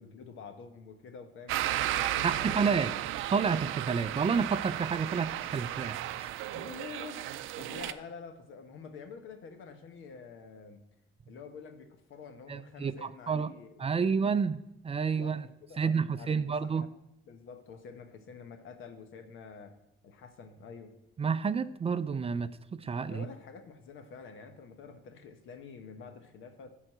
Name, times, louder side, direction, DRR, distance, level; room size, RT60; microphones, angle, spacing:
voice 1, 0.0-2.9 6.5-10.8 11.3-14.0 15.2-16.9 17.3-21.0 23.1-26.8, left 5 dB, 80° left, 7 dB, 1.1 m, -48 dB
sound 1, 1.5-7.9, right 13 dB, 90° right, 0.4 m, -34 dB
voice 2, 2.2-2.9 3.3-6.3 12.5-13.5 13.8-15.5 15.8-16.9 21.2-23.3, right 5 dB, 30° right, 13 dB, 0.4 m, -30 dB
10.5 x 3.9 x 7.6 m, 0.85 s
cardioid pair, 90°, 20 cm